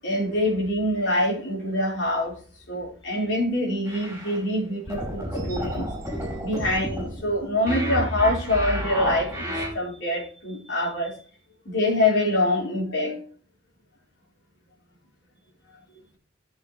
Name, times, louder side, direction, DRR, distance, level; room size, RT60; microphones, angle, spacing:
voice 1, 0.0-2.4 2.7-5.9 6.4-11.2 11.6-13.2 15.9-16.0, left 1 dB, 75° left, 4.3 m, -25 dB
sound 1, 3.9-4.4 4.9-9.7, equal, 10° right, 5.4 m, -30 dB
14.0 x 7.1 x 3.1 m
head